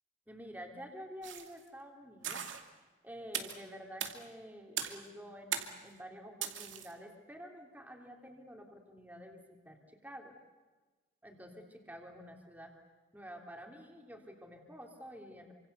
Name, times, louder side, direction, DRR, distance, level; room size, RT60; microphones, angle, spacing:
voice 1, 0.3-2.4 3.0-10.4 11.2-12.7 13.1-15.5, equal, 10° right, 2 dB, 3.4 m, -49 dB
sound 1, 1.2-1.6 2.2-2.6 3.3-3.6 4.0-4.2 4.8-5.1 5.5-5.8 6.4-6.9, right 9 dB, 75° right, 2.4 m, -38 dB
28.5 x 25.5 x 6.9 m, 1.3 s
head